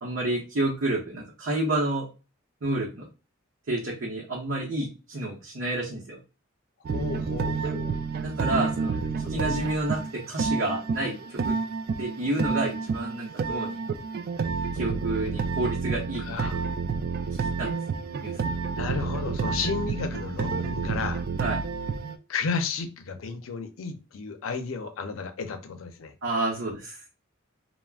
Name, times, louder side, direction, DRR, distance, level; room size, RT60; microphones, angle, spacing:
voice 1, 0.0-2.1 2.6-3.1 3.7-6.2 8.2-9.0 9.3-11.6 12.0-13.8 14.7-16.5 17.4-17.8 18.2-18.5 21.4-21.6 26.2-27.0, right 2 dB, 70° right, -4 dB, 0.7 m, -29 dB
sound 1, 6.8-22.2, right 5 dB, 50° right, 0.3 m, -29 dB
voice 2, 6.9-8.0 9.0-9.5 16.2-16.6 18.7-21.2 22.3-26.1, left 5 dB, 75° left, 7 dB, 0.5 m, -33 dB
2.4 x 2.0 x 3.3 m, 0.32 s
head